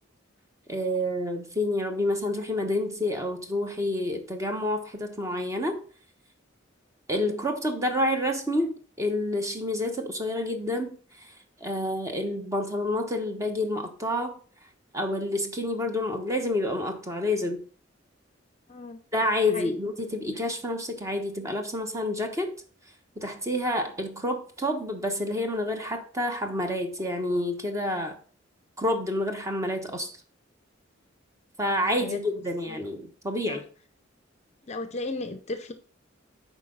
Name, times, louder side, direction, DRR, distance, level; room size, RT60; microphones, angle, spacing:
voice 1, 0.7-5.8 7.1-11.3 11.6-14.4 14.9-17.6 19.1-22.5 23.2-28.2 28.8-30.1 31.6-33.6, left 1 dB, 15° right, 1.1 m, -28 dB
voice 2, 34.7-35.7, left 2 dB, 35° left, 0.6 m, -34 dB
8.2 x 5.1 x 3.9 m
head